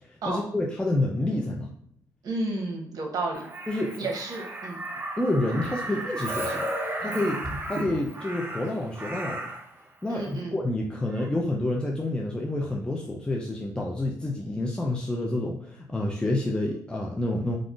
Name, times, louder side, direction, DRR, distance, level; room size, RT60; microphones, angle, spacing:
voice 1, 0.1-1.7 3.7-4.1 5.2-6.7 7.0-7.4 7.7-9.5 10.0-17.6, left 1 dB, 10° left, -1 dB, 0.4 m, -28 dB
voice 2, 2.2-3.5 4.0-4.8 10.1-10.6, right 2 dB, 55° right, 0 dB, 0.9 m, -31 dB
Crow, 3.3-9.7 11.1-11.3, right 1 dB, 30° right, 0.7 m, -34 dB
3.5 x 2.4 x 2.4 m, 0.65 s
supercardioid pair, 55°, 8 cm